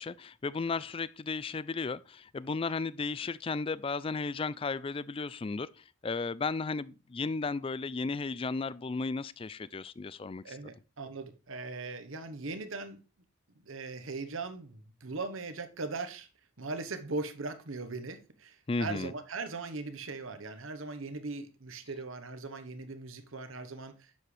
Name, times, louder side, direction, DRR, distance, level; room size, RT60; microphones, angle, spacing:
voice 1, 0.0-10.6 18.7-19.1, left 4 dB, 25° left, 0.3 m, -34 dB
voice 2, 10.4-13.0 13.6-16.3 16.6-24.2, right 3 dB, 80° right, 1.1 m, -39 dB
10.5 x 7.5 x 3.3 m
head